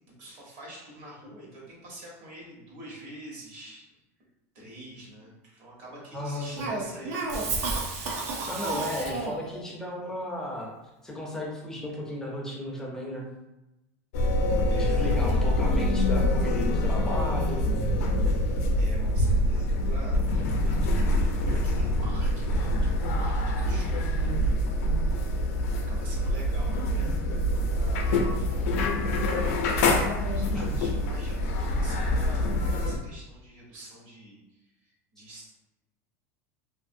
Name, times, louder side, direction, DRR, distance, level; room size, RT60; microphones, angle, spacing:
voice 1, 0.2-3.9 4.5-8.2 10.6-10.7 14.7-15.4 18.7-21.2 21.4-24.6 25.8-27.1 27.6-28.9 30.0-35.5, right 1 dB, 60° right, -4 dB, 1.1 m, -46 dB
voice 2, 6.1-6.7 8.5-10.7 11.0-13.3 14.8-17.7 30.5-30.7, left 1 dB, 5° left, -3 dB, 0.4 m, -34 dB
Cough, 6.6-9.5, right 3 dB, 80° right, 0.6 m, -31 dB
sound 1, 14.1-33.0, left 1 dB, 85° left, 0.4 m, -25 dB
2.5 x 2.5 x 2.6 m, 0.97 s
supercardioid pair, 165°, 8 cm